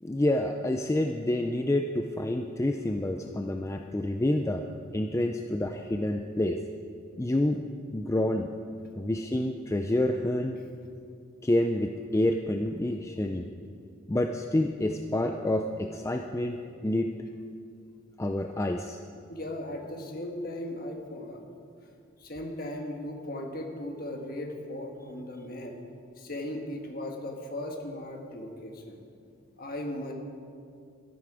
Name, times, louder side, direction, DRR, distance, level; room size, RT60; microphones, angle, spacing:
voice 1, 0.0-4.7 4.9-6.6 7.2-7.6 7.9-8.5 9.0-10.6 11.4-13.5 14.1-17.3 18.2-19.0, left 1 dB, 15° left, 5 dB, 0.3 m, -28 dB
voice 2, 19.3-21.4 22.2-25.7 26.2-29.0 29.6-30.1, left 1 dB, 45° left, 2 dB, 1.5 m, -37 dB
13.0 x 11.5 x 4.9 m, 2.4 s
head